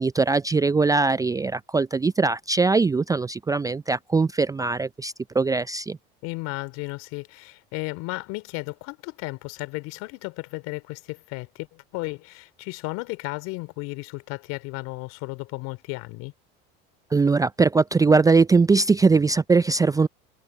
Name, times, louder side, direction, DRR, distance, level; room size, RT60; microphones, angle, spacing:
voice 1, 0.0-6.0 17.1-20.1, right 4 dB, 10° right, 0.5 m, -21 dB
voice 2, 6.2-16.3, left 25 dB, 60° left, 3.6 m, -34 dB
hypercardioid pair, 85°, 29 cm